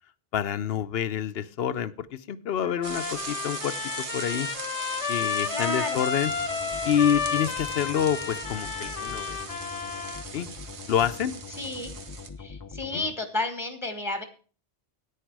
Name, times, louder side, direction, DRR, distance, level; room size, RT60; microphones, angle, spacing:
voice 1, 0.3-4.5 5.1-6.3 6.8-9.4 10.3-10.5 10.9-11.3 12.9-13.0, left 9 dB, 65° left, 14 dB, 0.9 m, -27 dB
Trumpet, 2.6-10.2, left 6 dB, 90° left, 1.3 m, -32 dB
sound 1, 2.8-12.3, right 5 dB, 80° right, 1.4 m, -39 dB
voice 2, 5.5-6.0 11.5-11.9 12.4-14.2, left 2 dB, ahead, 7 dB, 1.5 m, -31 dB
sound 2, 6.3-13.1, left 5 dB, 25° left, 0.5 m, -43 dB
10.0 x 9.4 x 4.6 m, 0.37 s
omnidirectional pair, 1.1 m